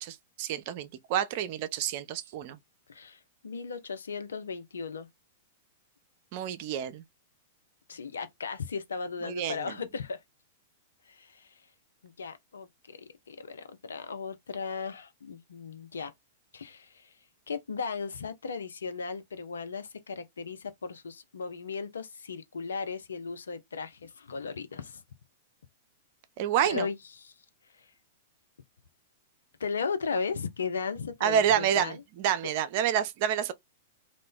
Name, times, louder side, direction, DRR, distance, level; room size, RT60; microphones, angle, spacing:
voice 1, 0.0-2.6 6.3-7.0 9.2-9.7 26.4-26.9 31.2-33.5, right 9 dB, 50° right, 0.5 m, -28 dB
voice 2, 2.9-5.1 7.9-10.2 11.1-11.6 12.0-13.0 13.3-16.1 16.5-17.1 17.5-25.0 26.6-27.3 27.8-27.9 29.6-32.0, left 5 dB, 80° left, 0.5 m, -36 dB
2.5 x 2.1 x 3.5 m
hypercardioid pair, 105°, 0 cm